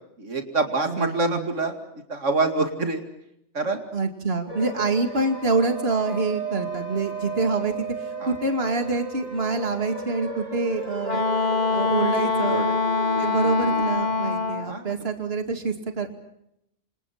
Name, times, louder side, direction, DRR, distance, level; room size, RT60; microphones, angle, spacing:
voice 1, 0.2-1.8 2.1-3.0 3.5-3.8 8.2-8.3 12.4-12.8 14.6-14.9, right 3 dB, 80° right, 6 dB, 2.7 m, -26 dB
voice 2, 0.9-1.5 3.9-7.7 8.2-11.2 11.7-12.7 13.2-16.2, right 3 dB, 55° right, 6 dB, 2.6 m, -26 dB
sound 1, 4.5-13.8, right 3 dB, 35° right, 6.6 m, -34 dB
Wind instrument woodwind instrument, 11.0-14.7, left 4 dB, 35° left, 1.5 m, -24 dB
28.0 x 27.5 x 5.8 m, 0.80 s
omnidirectional pair, 1.2 m